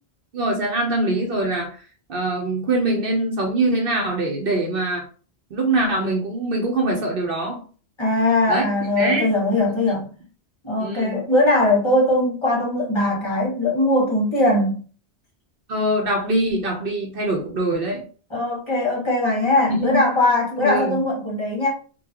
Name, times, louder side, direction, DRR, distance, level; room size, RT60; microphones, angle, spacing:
voice 1, 0.3-1.8 2.1-5.1 5.5-7.6 8.5-8.6 9.0-9.3 9.9-10.0 10.8-11.2 15.7-18.0 19.7-20.0 20.6-21.0, right 2 dB, 60° right, 1 dB, 0.9 m, -23 dB
voice 2, 8.0-10.0 10.6-14.8 18.3-21.7, left 2 dB, 25° left, -5 dB, 1.4 m, -20 dB
3.8 x 2.3 x 2.8 m, 0.39 s
omnidirectional pair, 1.1 m